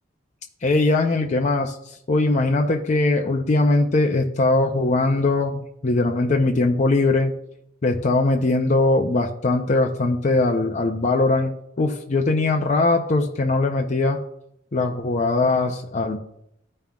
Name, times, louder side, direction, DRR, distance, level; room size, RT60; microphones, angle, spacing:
voice 1, 0.6-7.3 7.8-14.2 14.7-16.2, left 2 dB, 40° left, 2 dB, 0.6 m, -21 dB
14.0 x 5.5 x 2.3 m, 0.76 s
head